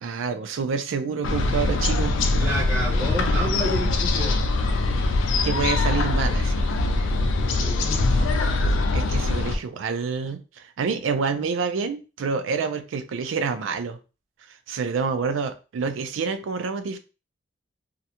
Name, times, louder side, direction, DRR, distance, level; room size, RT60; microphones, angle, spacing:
voice 1, 0.0-2.2 5.4-6.7 8.1-14.0 14.5-17.0, right 5 dB, 90° right, 9 dB, 0.4 m, -28 dB
sound 1, 1.2-9.6, left 2 dB, 90° left, 0.4 m, -22 dB
voice 2, 2.4-4.4 7.6-8.1, right 1 dB, 15° right, -8 dB, 0.6 m, -30 dB
2.4 x 2.1 x 2.8 m, 0.32 s
head